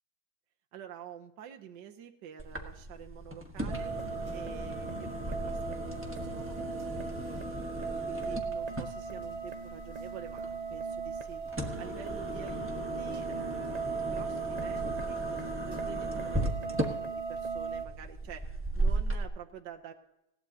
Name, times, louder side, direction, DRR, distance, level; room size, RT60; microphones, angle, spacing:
voice 1, 0.7-3.9 4.3-7.4 7.8-11.4 11.8-18.4 18.7-19.9, right 9 dB, 65° right, 3 dB, 1.5 m, -48 dB
sound 1, 2.4-19.2, right 1 dB, 10° right, 1.1 m, -37 dB
sound 2, 3.7-17.8, right 5 dB, 85° right, 0.3 m, -38 dB
19.5 x 17.0 x 2.8 m, 0.88 s
omnidirectional pair, 2.1 m